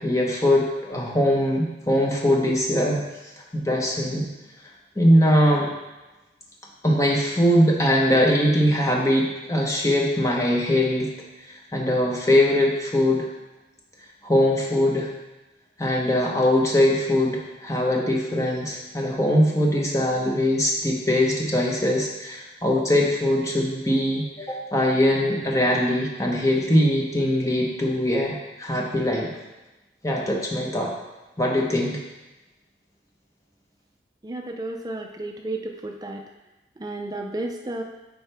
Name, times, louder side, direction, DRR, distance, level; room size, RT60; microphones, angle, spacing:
voice 1, 0.0-3.0 3.5-4.3 5.0-5.7 6.8-11.1 11.4-13.2 14.2-15.1 15.8-29.3 30.0-30.9 31.4-32.0, left 1 dB, 20° left, -1 dB, 1.0 m, -21 dB
voice 2, 34.2-36.2 36.8-37.8, right 2 dB, 20° right, 3 dB, 0.4 m, -32 dB
8.7 x 4.8 x 3.4 m, 1.1 s
head